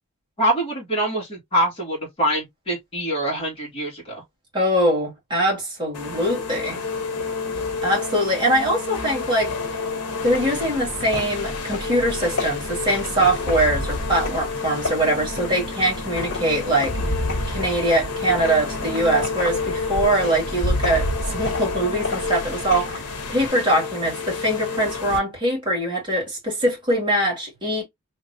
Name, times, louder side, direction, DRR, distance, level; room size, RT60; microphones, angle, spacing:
voice 1, 0.4-4.2, right 1 dB, 25° left, 1.7 m, -24 dB
voice 2, 4.5-6.8 7.8-9.5 10.2-17.1 17.5-27.8, right 1 dB, 20° right, 2.1 m, -22 dB
sound 1, 5.9-25.2, left 4 dB, 90° left, 0.9 m, -30 dB
sound 2, 10.2-23.5, left 1 dB, 60° left, 1.7 m, -30 dB
3.3 x 3.0 x 2.6 m
head